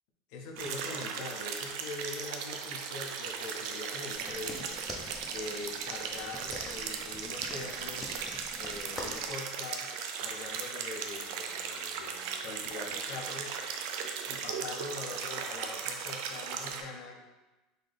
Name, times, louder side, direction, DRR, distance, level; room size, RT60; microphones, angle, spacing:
voice 1, 0.3-4.7 5.2-8.1 8.6-9.9 10.2-13.6 14.2-17.2, left 3 dB, 65° left, 1 dB, 0.6 m, -43 dB
sound 1, 0.6-16.8, right 6 dB, 65° right, 0.4 m, -37 dB
sound 2, 4.1-9.3, left 1 dB, 10° left, 0.5 m, -46 dB
3.9 x 2.8 x 3.3 m, 1.1 s
cardioid pair, 160°, 0 cm